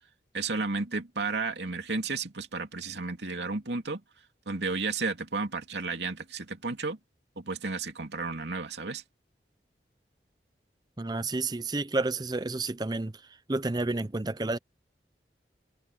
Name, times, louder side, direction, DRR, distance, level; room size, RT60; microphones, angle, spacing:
voice 1, 0.3-4.0 4.5-7.0 7.4-9.0, right 3 dB, 80° right, 2.6 m, -32 dB
voice 2, 11.0-13.2 13.5-14.6, right 2 dB, 25° right, 0.6 m, -30 dB
head